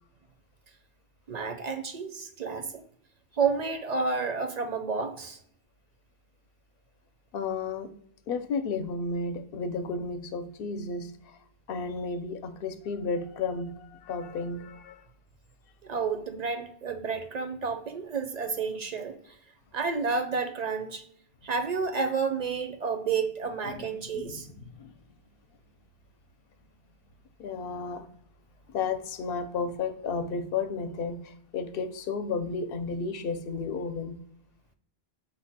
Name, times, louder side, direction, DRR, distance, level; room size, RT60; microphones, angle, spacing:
voice 1, 1.3-2.8 3.3-5.4 15.8-19.4 19.7-21.0 21.4-24.5, right 5 dB, 55° right, 7 dB, 0.5 m, -30 dB
voice 2, 7.3-7.9 8.3-11.4 11.7-15.0 23.7-23.9 24.1-24.9 27.4-28.1 28.7-34.2, left 4 dB, 65° left, 10 dB, 0.7 m, -33 dB
5.4 x 2.2 x 4.0 m, 0.67 s
omnidirectional pair, 1.1 m